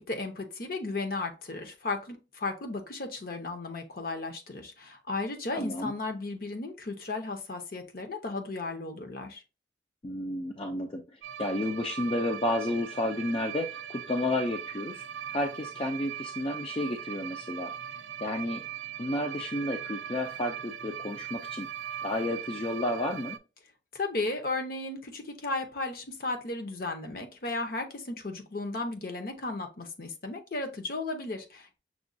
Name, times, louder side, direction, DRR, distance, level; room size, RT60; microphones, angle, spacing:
voice 1, 0.0-9.4 23.9-31.8, left 3 dB, 50° left, 5 dB, 0.8 m, -35 dB
voice 2, 5.5-5.9 10.0-15.0 15.3-17.7 18.2-18.6 19.0-21.7 22.0-23.4, left 1 dB, 30° left, 3 dB, 0.4 m, -31 dB
sound 1, 11.2-23.4, right 9 dB, 80° right, 0.4 m, -40 dB
6.0 x 2.3 x 2.6 m, 0.31 s
head